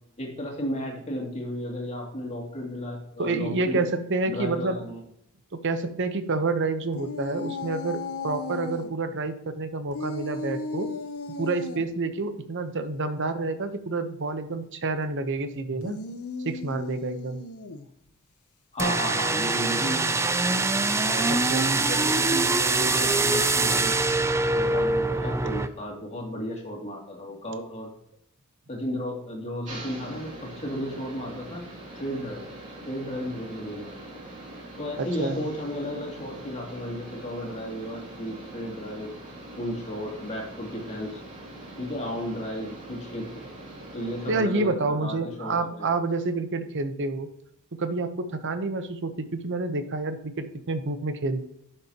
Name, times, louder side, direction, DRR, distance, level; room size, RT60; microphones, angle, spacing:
voice 1, 0.2-3.8 4.3-5.0 18.7-20.7 21.0-21.4 21.7-23.9 24.6-27.9 28.7-31.6 31.9-32.5 32.9-34.2 34.8-39.1 39.6-41.2 41.8-43.3 43.9-45.9, equal, 30° left, -1 dB, 2.4 m, -34 dB
voice 2, 3.2-4.8 5.6-10.9 11.4-16.0 16.4-17.4 21.5-21.8 35.0-35.4 44.3-47.3 47.8-51.5, right 3 dB, 55° right, 9 dB, 0.8 m, -28 dB
sound 1, 6.9-8.9 9.9-11.9 15.7-17.9, left 3 dB, 75° left, 0.7 m, -35 dB
Rising Pitch, 18.8-25.7, right 3 dB, 10° right, 0.4 m, -24 dB
sound 2, 29.6-44.4, right 1 dB, 35° right, 2.6 m, -43 dB
11.0 x 6.7 x 2.9 m, 0.77 s
head